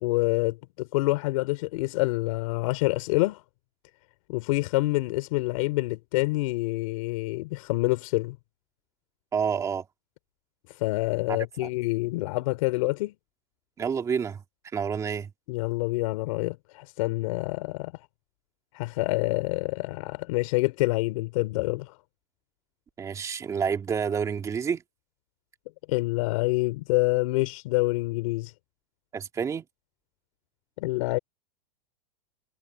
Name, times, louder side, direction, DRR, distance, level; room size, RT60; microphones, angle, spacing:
voice 1, 0.0-3.4 4.3-8.4 10.8-13.1 15.5-17.9 18.7-22.0 25.9-28.5 30.8-31.2, left 21 dB, 55° left, 3.7 m, -27 dB
voice 2, 9.3-9.9 11.3-11.7 13.8-14.4 14.7-15.3 23.0-24.8 29.1-29.6, right 6 dB, 15° right, 2.1 m, -29 dB
supercardioid pair, 155°, 21 cm